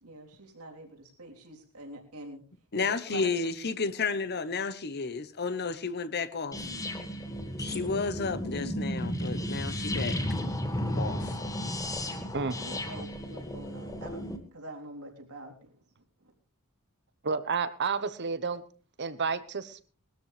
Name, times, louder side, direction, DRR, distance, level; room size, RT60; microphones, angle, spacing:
voice 1, 0.0-2.4 2.7-3.3 12.6-14.2 14.5-15.8, right 2 dB, 85° right, 3.6 m, -45 dB
voice 2, 2.7-6.6 7.6-10.2 11.0-11.4, left 4 dB, 50° left, 1.0 m, -32 dB
sound 1, 6.5-14.4, left 1 dB, 15° left, 1.9 m, -33 dB
voice 3, 17.2-18.6 19.0-19.8, right 5 dB, 50° right, 1.1 m, -30 dB
20.5 x 13.0 x 3.3 m
head